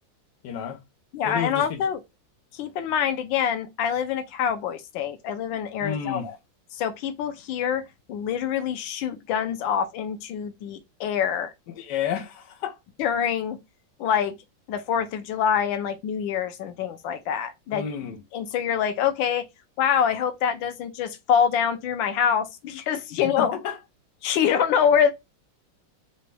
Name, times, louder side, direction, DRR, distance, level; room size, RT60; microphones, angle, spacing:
voice 1, 0.4-0.8 1.2-1.8 5.8-6.3 11.8-12.7 17.7-18.2 23.2-23.8, left 8 dB, 70° left, 1.3 m, -31 dB
voice 2, 1.1-2.0 2.5-6.4 6.7-7.8 8.1-11.5 13.0-13.6 14.0-14.3 14.7-17.8 18.3-19.4 19.8-23.5 24.2-25.1, left 8 dB, 90° left, 1.3 m, -25 dB
4.0 x 2.2 x 3.3 m
omnidirectional pair, 2.0 m